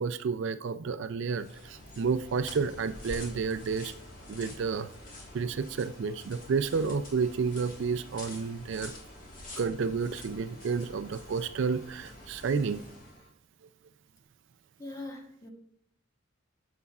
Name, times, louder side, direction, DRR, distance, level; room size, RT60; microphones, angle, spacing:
voice 1, 0.0-3.9 4.3-4.9 5.3-8.9 9.6-12.8, right 5 dB, 65° right, 11 dB, 0.4 m, -31 dB
sound 1, 1.3-13.2, left 1 dB, 40° left, 1.6 m, -47 dB
sound 2, 2.3-13.3, equal, 65° left, 2.7 m, -56 dB
voice 2, 14.8-15.5, left 2 dB, 15° left, 2 dB, 1.1 m, -41 dB
9.3 x 7.0 x 2.4 m, 0.65 s
head